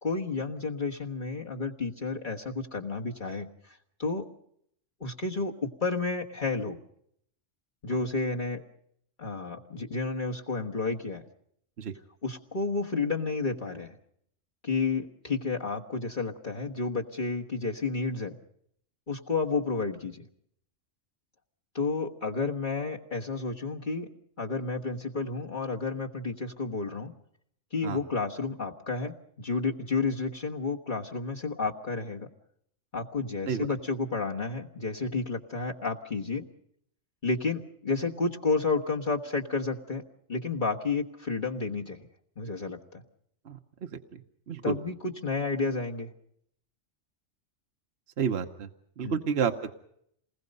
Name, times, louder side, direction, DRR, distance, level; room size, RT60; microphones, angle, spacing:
voice 1, 0.0-4.3 5.0-6.8 7.8-8.6 9.2-11.2 12.2-14.0 14.6-18.4 19.1-20.3 21.7-24.1 24.4-27.1 27.7-32.3 32.9-36.5 37.2-40.0 40.3-42.0 42.4-43.0 44.6-46.1 49.0-49.3, left 3 dB, 40° left, -1 dB, 1.6 m, -31 dB
voice 2, 44.5-44.8 48.2-48.7 49.0-49.7, right 7 dB, 60° right, 6 dB, 1.3 m, -29 dB
28.5 x 20.5 x 5.4 m, 0.70 s
omnidirectional pair, 1.2 m